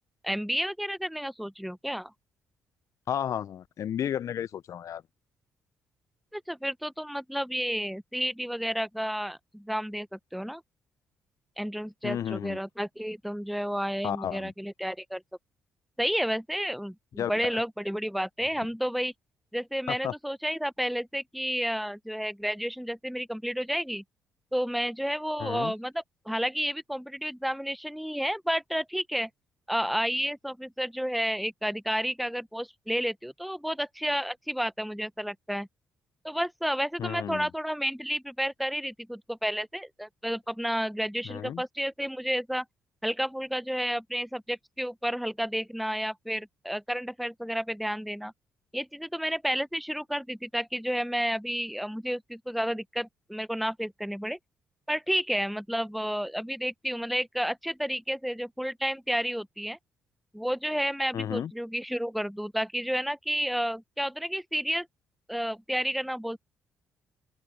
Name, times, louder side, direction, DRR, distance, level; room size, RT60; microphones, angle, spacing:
voice 1, 0.2-2.1 6.3-10.6 11.6-15.2 16.0-19.1 19.5-24.0 24.5-29.3 29.7-35.7 36.2-42.6 43.0-48.3 48.7-54.4 54.9-59.8 60.3-64.9 65.3-66.4, equal, ahead, 1.0 m, -31 dB
voice 2, 3.1-5.0 12.0-12.6 14.0-14.5 17.2-17.6 19.9-20.1 25.4-25.7 37.0-37.5 41.2-41.6 61.1-61.5, left 9 dB, 55° left, 0.9 m, -32 dB
open air
hypercardioid pair, 45°, 6 cm